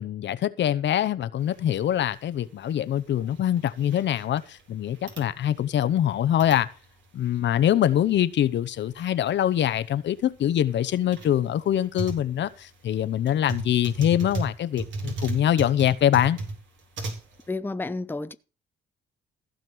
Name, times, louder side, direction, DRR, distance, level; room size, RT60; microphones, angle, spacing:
voice 1, 0.0-6.7 7.1-16.4, left 11 dB, 65° left, 0.9 m, -24 dB
sound 1, 1.4-17.5, right 2 dB, 70° right, 3.9 m, -38 dB
voice 2, 17.5-18.3, left 3 dB, 10° left, 0.7 m, -31 dB
15.5 x 5.3 x 7.7 m
cardioid pair, 90°, 20 cm